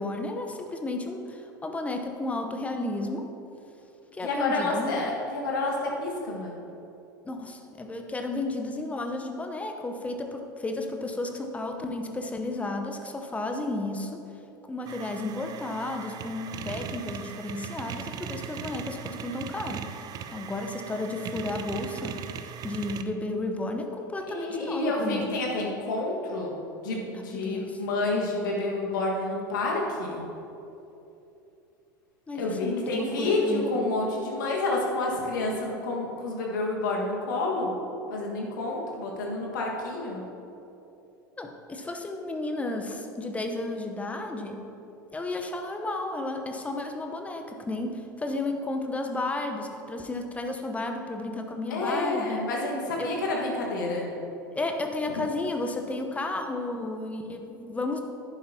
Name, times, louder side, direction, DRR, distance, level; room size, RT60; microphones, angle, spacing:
voice 1, 0.0-3.3 4.1-5.0 7.2-14.2 14.6-22.2 22.6-25.3 27.1-27.8 32.3-33.8 41.4-44.7 45.1-52.5 53.0-53.1 54.5-58.0, left 2 dB, 10° left, 4 dB, 0.9 m, -33 dB
voice 2, 4.2-6.5 24.3-26.5 26.8-30.2 32.4-37.8 38.1-40.2 51.7-54.1, left 2 dB, 65° left, -2 dB, 1.7 m, -29 dB
sound 1, 14.9-23.0, right 8 dB, 35° right, 0.5 m, -39 dB
11.0 x 9.9 x 2.9 m, 2.9 s
figure-of-eight pair, 80°, 11 cm